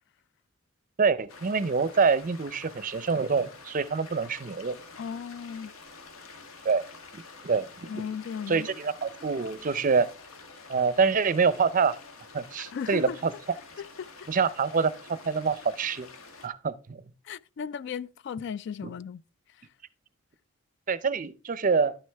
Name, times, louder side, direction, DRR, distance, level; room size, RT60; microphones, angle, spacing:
voice 1, 1.0-4.8 6.6-6.8 7.1-7.7 8.5-10.1 10.7-12.0 12.3-13.3 14.3-16.1 16.4-17.0 18.8-18.9 20.9-22.0, right 5 dB, 40° right, 0.5 m, -26 dB
sound 1, 1.3-16.5, left 4 dB, 90° left, 1.4 m, -48 dB
voice 2, 5.0-5.7 7.9-8.7 12.7-13.2 13.8-14.3 17.2-19.2, left 6 dB, 55° left, 0.3 m, -36 dB
11.5 x 6.3 x 3.4 m
head